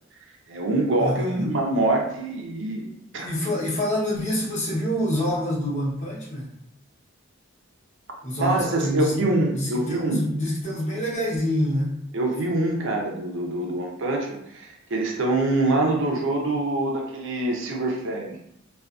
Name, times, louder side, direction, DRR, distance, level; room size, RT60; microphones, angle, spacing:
voice 1, 0.5-3.3 8.4-10.2 12.1-18.4, right 2 dB, 65° right, 1 dB, 0.6 m, -25 dB
voice 2, 1.0-1.5 3.2-6.5 8.2-9.1 9.5-12.0, equal, 35° left, -7 dB, 0.9 m, -26 dB
2.4 x 2.3 x 2.4 m, 0.75 s
head